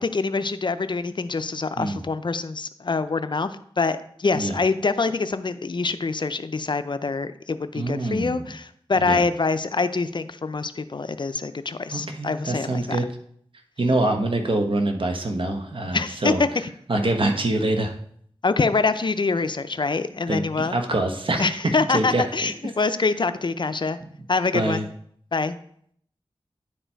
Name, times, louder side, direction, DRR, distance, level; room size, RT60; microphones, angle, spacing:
voice 1, 0.0-13.0 15.9-16.5 18.4-20.8 21.4-24.0 24.3-24.8 25.3-25.6, left 4 dB, 50° left, 12 dB, 0.5 m, -25 dB
voice 2, 7.7-8.5 9.0-9.2 11.9-13.0 13.8-16.4 16.9-17.9 20.3-21.6 21.9-22.5 24.0-24.1 24.5-24.8, right 2 dB, 60° right, 4 dB, 1.1 m, -25 dB
10.0 x 4.4 x 4.5 m, 0.65 s
wide cardioid pair, 55°, 10 cm